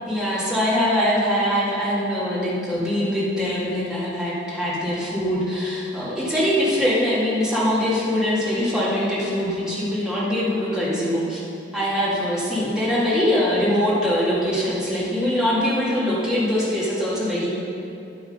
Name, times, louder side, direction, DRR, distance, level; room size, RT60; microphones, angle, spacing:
voice 1, 0.1-11.4 11.7-17.5, equal, 5° right, -8 dB, 2.3 m, -23 dB
10.0 x 7.9 x 5.4 m, 2.8 s
head